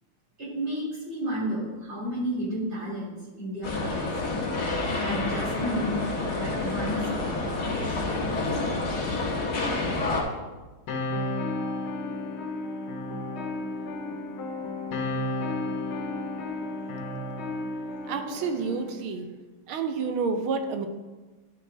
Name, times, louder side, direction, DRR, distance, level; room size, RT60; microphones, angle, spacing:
voice 1, 0.4-4.1 5.0-8.1, equal, 30° right, -7 dB, 3.0 m, -32 dB
sound 1, 3.6-10.2, left 3 dB, 50° left, 1.9 m, -28 dB
sound 2, 10.9-18.9, left 2 dB, 85° left, 1.9 m, -32 dB
voice 2, 18.1-19.3 19.7-20.9, right 4 dB, 85° right, 7 dB, 1.6 m, -29 dB
11.0 x 5.5 x 3.3 m, 1.2 s
omnidirectional pair, 2.2 m